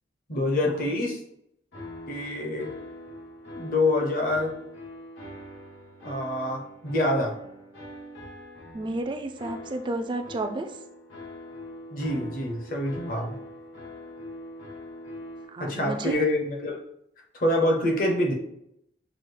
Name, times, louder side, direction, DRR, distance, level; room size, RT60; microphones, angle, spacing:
voice 1, 0.3-1.2 2.1-2.7 3.5-4.6 6.0-7.3 11.9-13.4 15.6-16.8 17.4-18.3, left 1 dB, 45° left, 1 dB, 0.8 m, -26 dB
sound 1, 1.7-15.4, left 1 dB, 70° left, 1.4 m, -43 dB
voice 2, 8.7-10.8 15.5-16.2, right 2 dB, 25° right, 6 dB, 0.3 m, -32 dB
5.9 x 2.1 x 3.3 m, 0.77 s
head